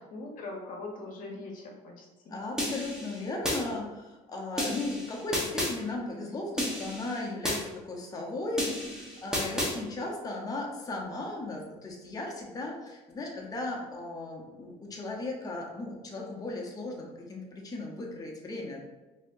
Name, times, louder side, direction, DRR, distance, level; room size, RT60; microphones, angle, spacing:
voice 1, 0.1-2.4, left 2 dB, 60° left, 1 dB, 0.8 m, -41 dB
voice 2, 2.3-18.8, left 2 dB, 25° left, -1 dB, 0.8 m, -36 dB
sound 1, 2.6-3.6 4.6-5.7 6.6-7.6 8.6-9.7, left 1 dB, 5° right, 1.1 m, -32 dB
4.1 x 2.8 x 2.6 m, 1.1 s
cardioid pair, 95°, 15 cm